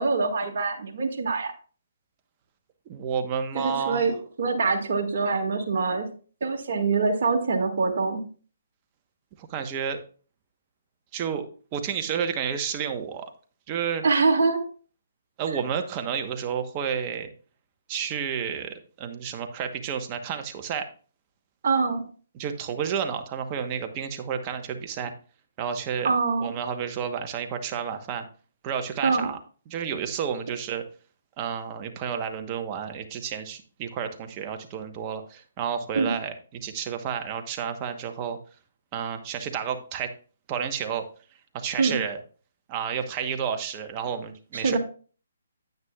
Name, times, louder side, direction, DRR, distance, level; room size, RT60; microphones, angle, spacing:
voice 1, 0.0-1.5 3.5-4.1 4.4-6.1 6.4-8.2 14.0-14.6 21.6-22.0 26.0-26.5 29.0-29.3 35.9-36.1 41.8-42.0 44.5-44.8, right 4 dB, 55° right, 1 dB, 1.9 m, -24 dB
voice 2, 2.9-4.0 9.4-10.0 11.1-11.5 11.7-13.3 13.7-14.0 15.4-17.3 17.9-20.9 22.3-25.1 25.6-26.1 26.4-28.2 28.6-29.4 29.7-30.8 31.4-38.4 38.9-40.1 40.5-41.0 41.5-42.2 42.7-44.8, right 7 dB, 30° right, 6 dB, 1.1 m, -31 dB
9.5 x 9.3 x 2.4 m, 0.40 s
hypercardioid pair, 145°, 0 cm